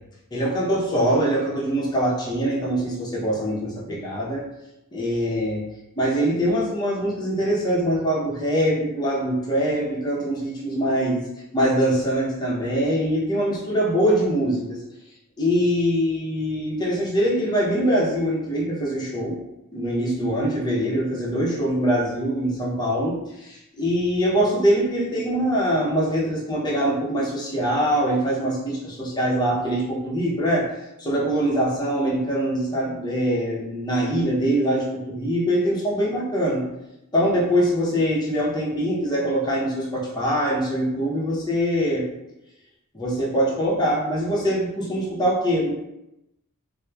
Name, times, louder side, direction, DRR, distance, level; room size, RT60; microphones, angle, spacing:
voice 1, 0.3-4.4 4.9-5.6 6.0-11.2 11.5-14.8 15.4-19.4 19.7-30.7 31.0-36.6 37.1-42.1 42.9-45.7, equal, 20° left, -5 dB, 0.6 m, -23 dB
2.8 x 2.0 x 2.2 m, 0.90 s
head